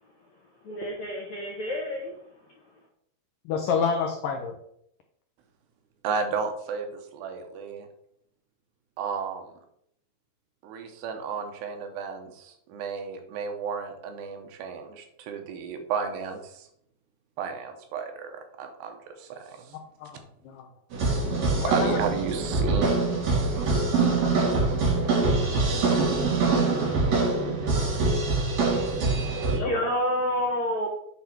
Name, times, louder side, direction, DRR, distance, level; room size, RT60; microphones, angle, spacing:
voice 1, 0.6-2.1 29.4-30.9, equal, 70° left, -2 dB, 1.7 m, -29 dB
voice 2, 3.5-4.6 20.0-20.7 21.6-22.0 29.5-29.7, left 6 dB, 85° left, 3 dB, 1.9 m, -29 dB
voice 3, 6.0-7.9 9.0-9.5 10.6-16.7 17.4-19.8 21.6-22.9, right 6 dB, 75° right, 5 dB, 3.0 m, -33 dB
sound 1, 20.9-29.6, right 3 dB, 50° right, 2.5 m, -24 dB
8.6 x 3.8 x 5.9 m, 0.73 s
omnidirectional pair, 5.0 m